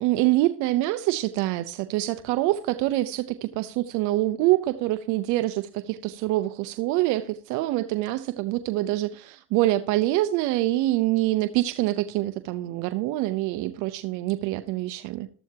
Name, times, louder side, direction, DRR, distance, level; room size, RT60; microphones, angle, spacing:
voice 1, 0.0-15.3, right 16 dB, 85° right, 0.7 m, -25 dB
14.0 x 13.0 x 2.9 m
cardioid pair, 95°, 29 cm